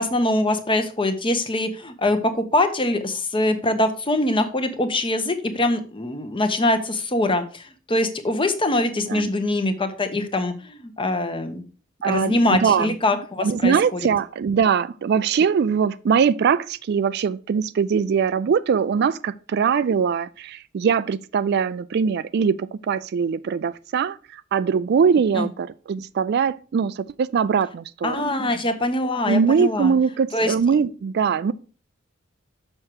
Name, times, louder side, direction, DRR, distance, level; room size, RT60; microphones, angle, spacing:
voice 1, 0.0-11.6 12.0-14.0 25.3-25.5 28.0-29.9 30.3-30.5, left 1 dB, 25° left, 0.9 m, -23 dB
voice 2, 12.0-12.9 13.4-28.3 29.3-31.5, right 6 dB, 55° right, 0.3 m, -22 dB
6.4 x 6.1 x 4.6 m
head